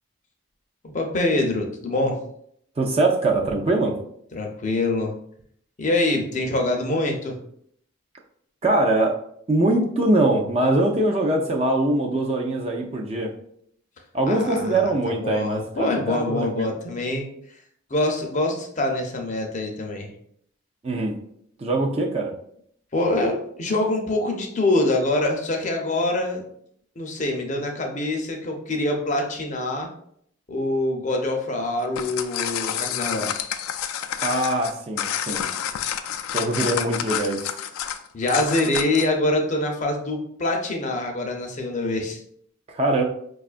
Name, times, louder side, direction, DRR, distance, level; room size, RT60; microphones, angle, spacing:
voice 1, 0.8-2.2 4.3-5.1 5.8-7.4 14.3-14.8 15.2-17.3 17.9-20.1 22.9-26.4 27.0-29.9 30.5-33.3 36.7-36.9 38.1-42.2, left 2 dB, 35° left, 2 dB, 0.5 m, -25 dB
voice 2, 2.8-4.0 8.6-9.2 9.5-13.3 14.1-16.7 20.8-21.1 21.6-22.3 34.2-35.4 36.3-37.5 42.7-43.0, right 2 dB, 30° right, 1 dB, 0.4 m, -22 dB
sound 1, 31.8-39.1, left 9 dB, 90° left, 0.3 m, -29 dB
5.1 x 2.3 x 2.4 m, 0.68 s
head